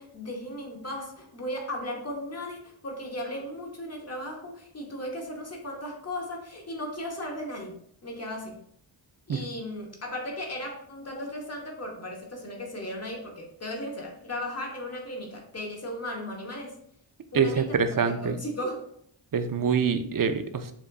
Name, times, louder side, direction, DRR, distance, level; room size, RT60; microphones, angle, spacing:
voice 1, 0.0-7.7 8.0-8.6 9.3-16.7 17.3-18.8, left 1 dB, 30° left, 0 dB, 1.1 m, -36 dB
voice 2, 17.3-18.4 19.3-20.7, right 6 dB, 45° right, 8 dB, 0.5 m, -25 dB
7.0 x 2.5 x 2.3 m, 0.67 s
wide cardioid pair, 75°, 49 cm